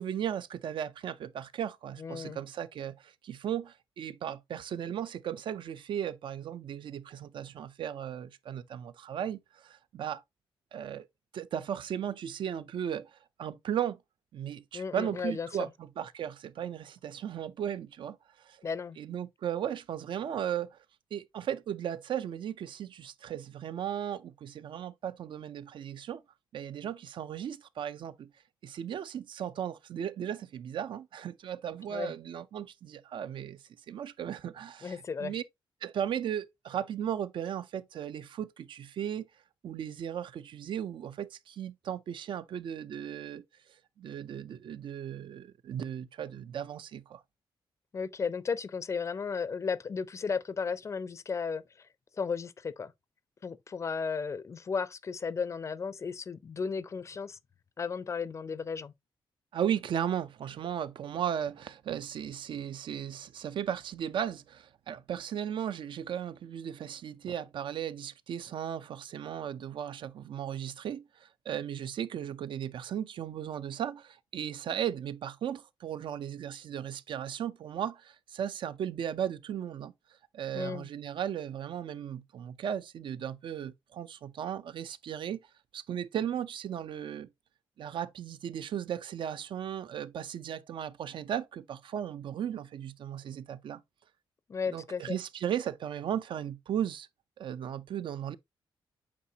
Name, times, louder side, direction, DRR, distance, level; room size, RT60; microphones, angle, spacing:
voice 1, 0.0-10.2 10.7-11.1 11.3-14.0 14.3-18.6 19.0-20.8 21.1-26.2 26.5-28.3 28.6-35.4 35.8-39.3 39.6-43.4 44.0-47.2 59.5-79.9 80.3-85.4 85.7-87.3 87.8-93.8 94.7-97.1 97.4-98.3, right 9 dB, 65° right, 0.5 m, -36 dB
voice 2, 2.0-2.4 14.7-15.7 18.6-19.0 31.9-32.1 34.8-35.3 47.9-51.6 52.2-52.9 53.4-57.4 57.8-58.9 80.5-80.9 94.5-95.2, left 5 dB, 35° left, 0.5 m, -34 dB
8.4 x 4.1 x 2.7 m
wide cardioid pair, 160°, 9 cm